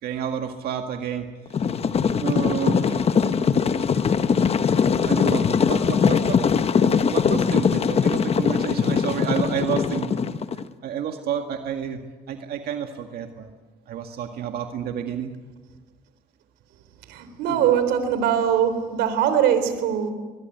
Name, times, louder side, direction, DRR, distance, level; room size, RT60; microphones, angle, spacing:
voice 1, 0.0-1.3 2.2-3.1 5.0-6.4 6.9-10.2 10.8-12.0 12.3-13.5 13.9-15.3 17.5-17.7, right 8 dB, 70° right, 4 dB, 2.0 m, -30 dB
sound 1, 1.5-10.6, left 6 dB, 35° left, 1.1 m, -21 dB
voice 2, 17.1-20.1, right 9 dB, 90° right, 10 dB, 3.7 m, -21 dB
22.0 x 21.5 x 9.3 m, 1.3 s
cardioid pair, 110°, 17 cm